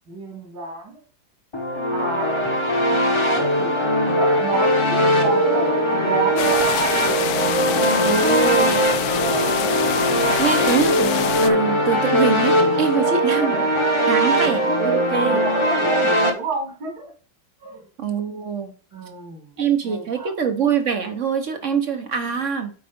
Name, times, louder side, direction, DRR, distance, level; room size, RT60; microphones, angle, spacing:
voice 1, 0.1-1.0 1.9-2.9 3.3-6.9 9.0-9.6 13.5-13.8 14.8-15.0 15.3-17.1 17.6-17.8 18.9-20.3, right 3 dB, 75° right, 1 dB, 3.6 m, -30 dB
sound 1, 1.5-16.3, equal, 20° left, 1.1 m, -20 dB
sound 2, 6.4-11.5, left 12 dB, 75° left, 0.9 m, -26 dB
voice 2, 8.0-8.8 10.4-13.6 14.1-15.4 18.0-18.7 19.6-22.7, right 6 dB, 50° right, 7 dB, 1.1 m, -24 dB
8.6 x 4.9 x 3.7 m, 0.38 s
omnidirectional pair, 2.1 m